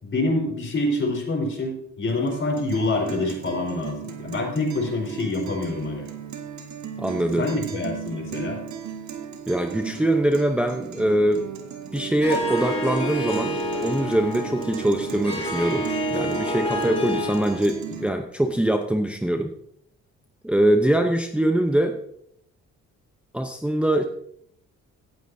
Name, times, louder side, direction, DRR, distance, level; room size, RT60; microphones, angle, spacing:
voice 1, 0.0-6.1 7.4-8.6, left 2 dB, 40° left, 0 dB, 4.3 m, -26 dB
Guitar, 2.1-18.1, right 8 dB, 65° right, 1.6 m, -37 dB
voice 2, 7.0-7.5 9.5-11.4 11.9-19.5 20.4-22.0 23.3-24.0, right 1 dB, 5° right, 5 dB, 0.8 m, -23 dB
Harp, 12.2-17.7, equal, 20° left, 4.9 m, -28 dB
17.5 x 9.2 x 2.7 m, 0.70 s
cardioid pair, 90°, 30 cm